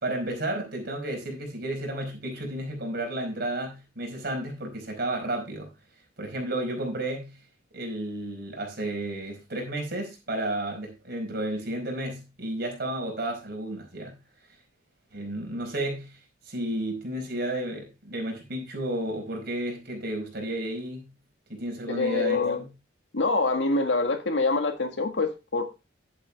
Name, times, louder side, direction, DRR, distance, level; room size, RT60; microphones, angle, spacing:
voice 1, 0.0-5.7 6.2-7.4 7.7-14.2 15.1-16.2 16.5-21.1 21.5-22.7, right 1 dB, 60° right, 4.8 m, -32 dB
voice 2, 21.9-22.6 23.1-25.6, left 3 dB, 75° left, 1.8 m, -25 dB
11.0 x 8.3 x 3.5 m
head